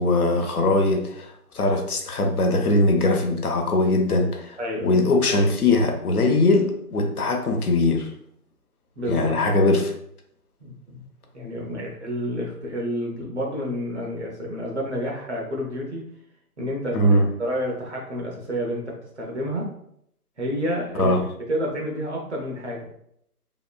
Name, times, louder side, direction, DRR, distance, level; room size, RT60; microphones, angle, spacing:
voice 1, 0.0-8.1 9.1-9.9 16.9-17.3 21.0-21.2, left 2 dB, 70° left, 3 dB, 0.7 m, -21 dB
voice 2, 4.6-5.0 9.0-9.3 10.6-11.0 11.3-16.0 16.6-19.7 20.4-21.2 21.5-22.9, equal, 50° right, -2 dB, 0.9 m, -29 dB
2.9 x 2.3 x 2.2 m, 0.72 s
figure-of-eight pair, 165°, 46 cm